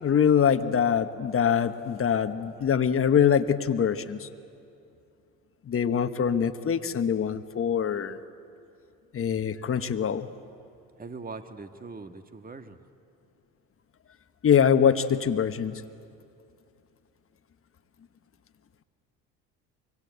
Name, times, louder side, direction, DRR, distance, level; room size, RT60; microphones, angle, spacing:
voice 1, 0.0-4.3 5.6-8.2 9.1-10.3 14.4-15.8, left 8 dB, 35° left, 10 dB, 1.3 m, -24 dB
voice 2, 11.0-12.8, right 4 dB, 25° right, 8 dB, 1.7 m, -41 dB
24.5 x 24.0 x 8.2 m, 2.5 s
supercardioid pair, 75°, 37 cm